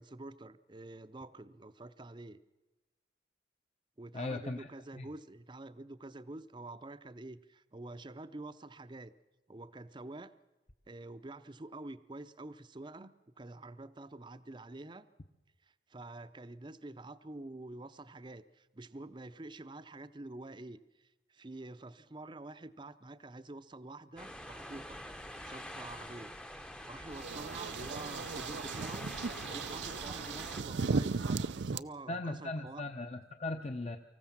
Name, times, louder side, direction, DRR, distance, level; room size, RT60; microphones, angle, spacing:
voice 1, 0.0-2.4 4.0-9.1 9.5-10.3 10.9-15.1 15.6-25.0 25.4-26.3 26.8-29.1 29.5-32.8, right 2 dB, 25° right, 13 dB, 0.6 m, -47 dB
voice 2, 4.1-4.7 5.0-5.1 32.1-34.0, left 2 dB, 35° left, 6 dB, 0.8 m, -38 dB
sound 1, 24.2-30.6, equal, 5° left, 0.8 m, -46 dB
Wind instrument woodwind instrument, 27.0-31.3, left 3 dB, 75° left, 1.0 m, -58 dB
sound 2, 27.1-31.8, right 4 dB, 80° right, 0.6 m, -36 dB
25.0 x 15.0 x 7.3 m, 1.1 s
head